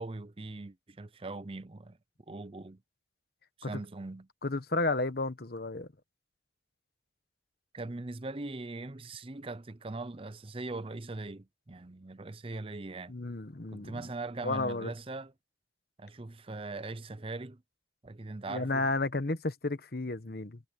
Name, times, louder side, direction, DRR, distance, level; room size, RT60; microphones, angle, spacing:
voice 1, 0.0-2.0 2.3-2.8 3.6-4.3 7.7-13.1 13.7-15.3 16.0-17.6 18.0-18.9, right 2 dB, 30° right, 0.7 m, -41 dB
voice 2, 4.4-5.9 13.1-14.0 14.4-14.9 18.5-20.6, left 2 dB, 55° left, 1.2 m, -32 dB
head